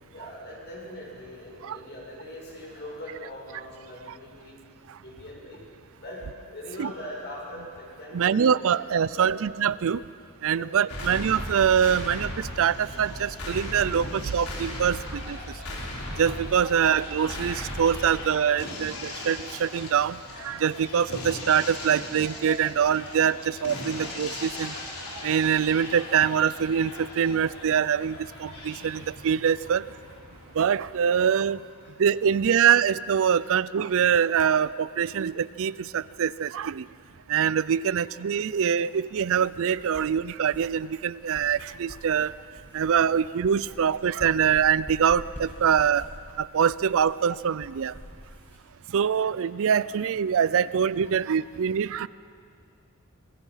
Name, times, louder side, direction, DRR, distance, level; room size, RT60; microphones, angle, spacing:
voice 1, 0.1-4.7 5.0-5.7 6.0-8.6 9.1-9.4 10.5-10.7 18.0-18.1 29.7-29.8 31.2-31.4 31.8-32.3 43.7-43.8 51.0-51.1, left 1 dB, 50° left, -3 dB, 6.9 m, -41 dB
voice 2, 8.1-10.0 10.4-15.4 16.2-24.7 25.2-29.8 30.6-31.6 32.0-36.9 37.3-42.3 42.7-46.0 46.4-47.9 48.9-52.1, right 8 dB, 65° right, 18 dB, 0.4 m, -24 dB
sound 1, 10.9-30.9, left 1 dB, 75° left, 4.0 m, -38 dB
sound 2, 39.1-48.6, equal, 10° left, 5.9 m, -47 dB
26.0 x 21.0 x 5.6 m, 2.3 s
head